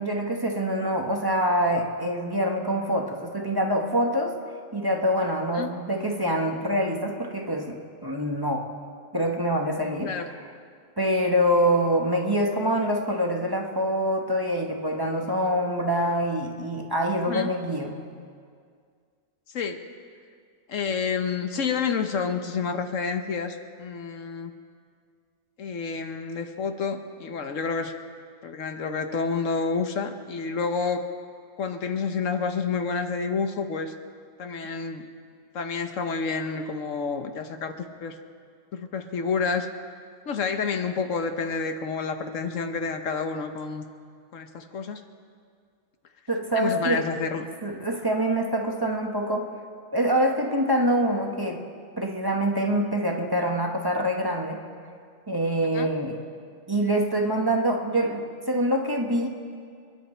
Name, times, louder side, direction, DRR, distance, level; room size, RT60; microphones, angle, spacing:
voice 1, 0.0-4.3 4.7-7.8 8.0-8.6 9.1-10.1 11.0-18.0 46.3-47.0 47.6-49.4 49.9-51.6 52.0-54.6 55.3-56.2 56.7-59.3, equal, 20° right, 0 dB, 1.3 m, -25 dB
voice 2, 20.7-24.5 25.6-27.9 28.4-31.0 31.6-33.9 34.4-35.1 35.5-38.2 38.7-39.7 40.3-43.9 44.3-45.0 46.5-47.5 55.7-55.9, left 5 dB, 75° left, 7 dB, 1.3 m, -29 dB
27.5 x 11.0 x 4.4 m, 2.2 s
omnidirectional pair, 1.3 m